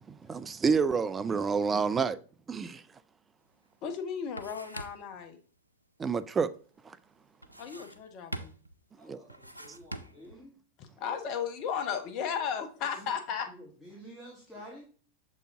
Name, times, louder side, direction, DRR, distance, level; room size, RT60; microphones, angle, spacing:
voice 1, 0.0-2.2 2.5-2.8 6.0-6.5 6.8-7.0 9.0-9.2, right 5 dB, 20° right, 0.3 m, -28 dB
sound 1, 3.5-3.6 3.9-5.2 7.4-8.1 8.3-8.8 9.3-10.4, right 1 dB, 90° right, 0.4 m, -43 dB
voice 2, 3.8-5.4 7.6-8.5 10.8-13.5, left 7 dB, 40° left, 1.0 m, -35 dB
voice 3, 8.9-10.5 12.8-13.1 13.5-14.8, equal, 5° left, 1.4 m, -50 dB
6.6 x 4.1 x 3.6 m
figure-of-eight pair, 90°, 0 cm